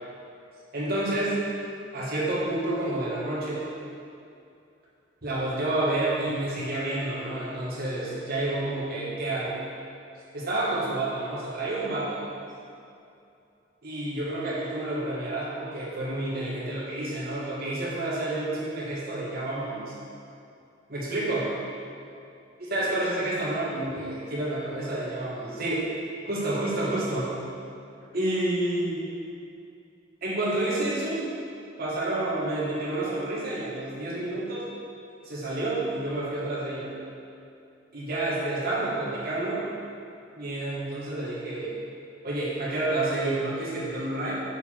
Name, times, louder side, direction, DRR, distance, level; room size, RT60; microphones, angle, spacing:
voice 1, 0.7-1.3 1.9-3.7 5.2-9.6 10.3-12.2 13.8-19.9 20.9-21.5 22.7-25.9 26.3-27.3 28.1-29.1 30.2-31.2 31.8-34.7 35.2-36.9 37.9-39.7 40.3-41.8 42.2-44.3, right 2 dB, 55° right, -7 dB, 1.6 m, -29 dB
6.7 x 4.5 x 4.5 m, 2.6 s
head